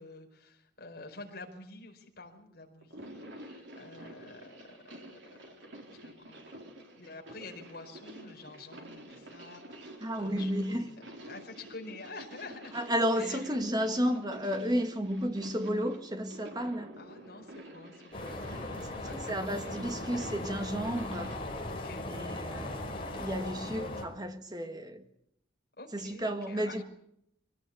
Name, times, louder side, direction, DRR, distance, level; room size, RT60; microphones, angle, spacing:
voice 1, 0.0-5.4 5.9-6.6 7.0-9.6 9.9-12.8 13.1-13.6 17.0-18.5 19.0-19.6 21.7-22.0 25.8-26.8, left 3 dB, 50° left, 4.7 m, -48 dB
sound 1, 2.8-21.4, right 1 dB, 65° right, 4.1 m, -49 dB
voice 2, 10.0-10.9 12.7-16.9 18.5-21.3 22.1-22.8 23.1-25.0 25.9-26.8, equal, 20° right, 1.7 m, -32 dB
sound 2, 18.1-24.0, left 1 dB, 25° left, 4.6 m, -38 dB
23.5 x 18.0 x 8.4 m
head